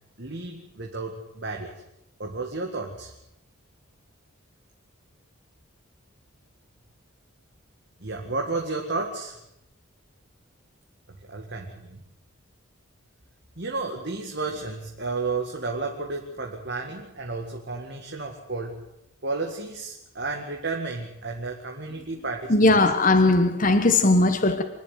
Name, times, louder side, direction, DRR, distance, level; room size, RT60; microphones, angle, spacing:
voice 1, 0.2-1.7 2.2-3.1 8.0-9.4 11.3-12.0 13.6-18.8 19.2-22.8, right 3 dB, 50° right, 1 dB, 2.0 m, -32 dB
voice 2, 22.5-24.6, left 2 dB, 40° left, 7 dB, 1.3 m, -19 dB
25.5 x 11.0 x 9.4 m, 0.84 s
head